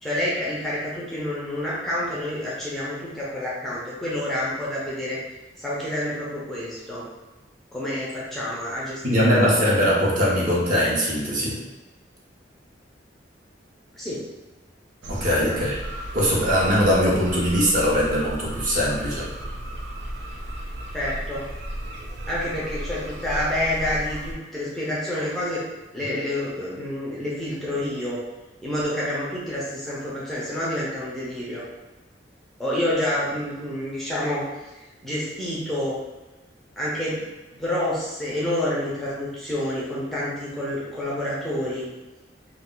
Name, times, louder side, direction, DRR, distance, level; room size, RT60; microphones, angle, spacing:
voice 1, 0.0-5.2 5.6-7.0 7.7-9.5 14.0-14.2 15.3-15.5 20.9-21.4 22.3-25.6 25.9-28.2 28.6-31.7 32.6-34.5 34.7-36.0 36.8-37.2 37.6-41.9, left 1 dB, ahead, -8 dB, 0.5 m, -28 dB
voice 2, 9.0-11.6 15.1-15.8 16.1-19.3, equal, 45° right, -6 dB, 0.8 m, -21 dB
sound 1, 15.0-24.3, right 1 dB, 75° right, 0.5 m, -34 dB
2.3 x 2.2 x 3.7 m, 1.1 s
head